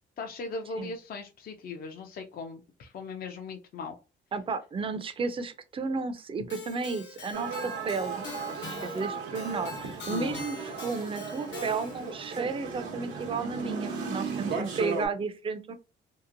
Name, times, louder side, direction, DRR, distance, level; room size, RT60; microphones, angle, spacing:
voice 1, 0.2-3.9 10.1-10.4, left 4 dB, 50° left, 4 dB, 0.5 m, -38 dB
voice 2, 4.3-15.7, right 4 dB, 25° right, 10 dB, 0.4 m, -33 dB
Keyboard (musical), 6.5-12.2, left 4 dB, 65° left, 1.0 m, -44 dB
sound 1, 7.3-15.1, right 5 dB, 85° right, 0.8 m, -36 dB
2.8 x 2.1 x 2.5 m, 0.31 s
cardioid pair, 90°, 20 cm